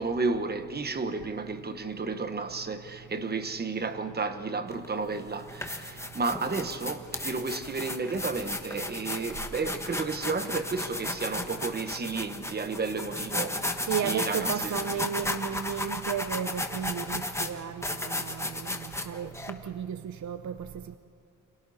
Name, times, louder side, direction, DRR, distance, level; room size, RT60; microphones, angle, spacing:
voice 1, 0.0-14.8, right 4 dB, 30° right, 1.2 m, -32 dB
sound 1, 4.7-4.9 5.4-19.5, left 2 dB, 10° left, 1.2 m, -34 dB
voice 2, 13.9-18.8 19.1-20.6, right 8 dB, 60° right, 0.7 m, -33 dB
29.5 x 26.5 x 4.2 m
wide cardioid pair, 175°, 32 cm